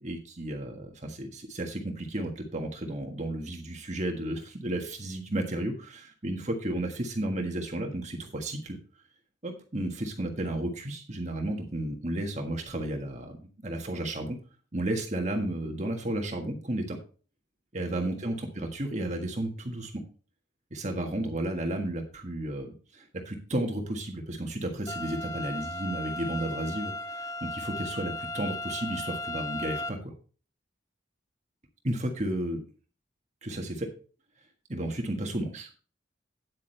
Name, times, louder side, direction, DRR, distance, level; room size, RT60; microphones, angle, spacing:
voice 1, 0.0-8.8 9.4-14.4 14.7-17.0 17.7-19.9 20.7-30.1 31.8-32.6 33.4-33.9 34.7-35.7, right 1 dB, 35° right, 3 dB, 1.6 m, -33 dB
sound 1, 24.9-29.9, left 1 dB, 20° left, 0.8 m, -36 dB
9.7 x 8.6 x 3.3 m, 0.37 s
head